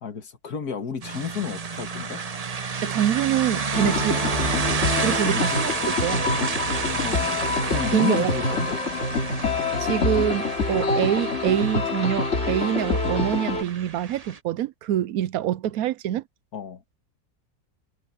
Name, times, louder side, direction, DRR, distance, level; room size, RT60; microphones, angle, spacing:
voice 1, 0.0-2.2 3.8-4.1 5.3-5.6 6.8-8.9 16.5-16.8, left 8 dB, 75° left, 2.1 m, -32 dB
sound 1, 1.0-14.4, right 5 dB, 35° right, 0.7 m, -30 dB
voice 2, 2.8-4.2 5.0-6.3 7.9-8.3 9.8-16.2, right 11 dB, 75° right, 1.0 m, -25 dB
sound 2, 3.7-13.6, left 3 dB, 50° left, 2.8 m, -26 dB
omnidirectional pair, 1.6 m